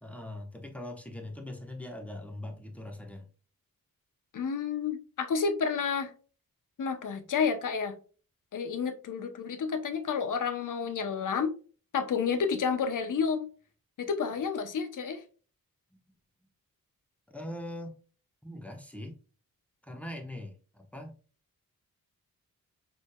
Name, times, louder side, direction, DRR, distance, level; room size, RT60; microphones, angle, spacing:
voice 1, 0.0-3.3 17.3-17.9 18.4-19.2 19.8-21.1, left 1 dB, 5° left, 0.9 m, -41 dB
voice 2, 4.3-6.1 6.8-7.9 8.5-11.5 11.9-13.5 14.0-15.2, left 6 dB, 65° left, 0.7 m, -30 dB
4.1 x 3.3 x 2.2 m
cardioid pair, 70°, 34 cm